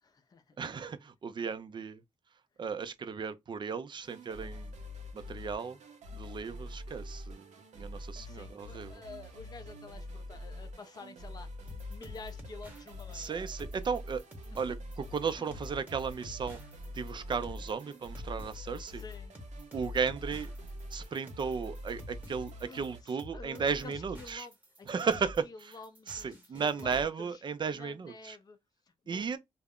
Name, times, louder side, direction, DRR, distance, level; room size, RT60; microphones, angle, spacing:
voice 1, 0.0-0.6 2.5-2.6 8.2-11.5 11.9-13.5 15.4-15.5 18.9-19.4 22.6-27.4 27.7-29.4, left 4 dB, 30° left, 0.4 m, -50 dB
voice 2, 0.6-2.0 2.6-4.7 5.1-5.8 6.1-9.0 13.1-14.2 14.6-14.8 15.1-16.6 16.9-19.0 19.7-20.5 20.9-24.5 24.9-25.4 26.1-26.2 26.5-28.4 29.1-29.4, right 5 dB, 40° right, 0.4 m, -35 dB
sound 1, 4.0-23.0, left 1 dB, 75° right, 0.7 m, -45 dB
sound 2, 11.7-27.0, equal, 10° right, 0.8 m, -48 dB
2.4 x 2.0 x 3.5 m
wide cardioid pair, 125°, 12 cm